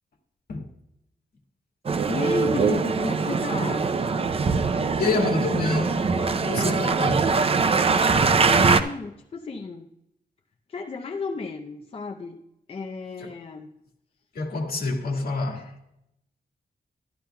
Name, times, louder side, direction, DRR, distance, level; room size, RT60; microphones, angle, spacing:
Male speech man speaking, 1.9-8.8, right 4 dB, 35° right, 0.5 m, -22 dB
voice 1, 2.1-3.9 8.4-9.9 10.7-12.4 12.7-13.7, left 4 dB, 35° left, 0.6 m, -33 dB
voice 2, 5.0-6.0 6.4-7.3 14.4-15.7, left 3 dB, 65° left, 1.8 m, -27 dB
13.5 x 12.0 x 2.2 m
wide cardioid pair, 150°, 17 cm